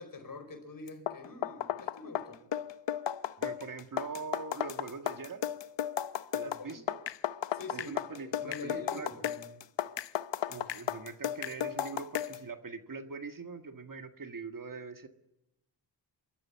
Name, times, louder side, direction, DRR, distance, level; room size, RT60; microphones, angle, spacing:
voice 1, 0.0-2.4 6.4-6.8 7.5-9.5, left 2 dB, 50° left, 6 dB, 5.2 m, -45 dB
sound 1, 0.9-12.4, left 10 dB, 75° left, 0.9 m, -35 dB
voice 2, 3.4-5.4 6.3-7.0 7.7-9.1 10.5-15.1, right 4 dB, 50° right, 8 dB, 1.8 m, -42 dB
29.0 x 14.0 x 8.3 m, 0.91 s
wide cardioid pair, 85°, 43 cm